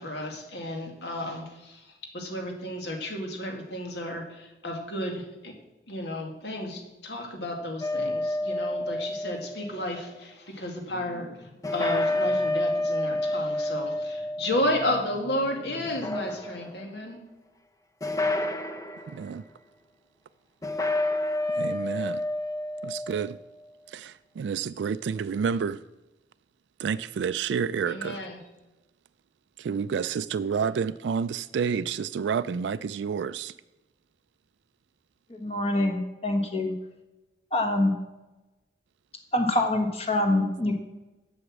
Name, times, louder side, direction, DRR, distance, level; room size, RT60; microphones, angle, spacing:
voice 1, 0.0-5.5 5.9-17.2 27.9-28.4, left 1 dB, 80° left, 2.2 m, -32 dB
sound 1, 7.8-9.9 11.6-15.4 15.9-16.9 18.0-19.1 20.6-23.3, left 1 dB, 20° left, 0.6 m, -29 dB
voice 2, 19.1-19.4 21.6-22.2 22.8-23.4 23.9-25.8 26.8-28.3 29.6-33.5 40.4-40.5, right 6 dB, 90° right, 0.3 m, -29 dB
voice 3, 35.3-36.7 37.5-37.9 39.3-40.7, left 1 dB, 35° left, 1.4 m, -25 dB
8.1 x 7.1 x 7.4 m
head